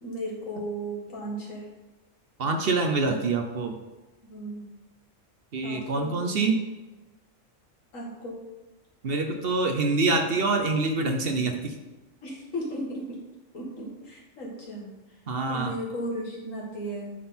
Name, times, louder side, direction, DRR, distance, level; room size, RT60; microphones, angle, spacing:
voice 1, 0.0-1.7 4.3-4.7 5.6-6.1 7.9-8.4 12.2-13.2 13.5-15.2 15.5-17.1, right 1 dB, 80° left, -3 dB, 2.2 m, -35 dB
voice 2, 2.4-3.8 5.5-6.6 9.0-11.7 15.3-15.7, right 3 dB, 55° right, 4 dB, 0.8 m, -25 dB
9.3 x 3.8 x 4.3 m, 1.1 s
omnidirectional pair, 1.3 m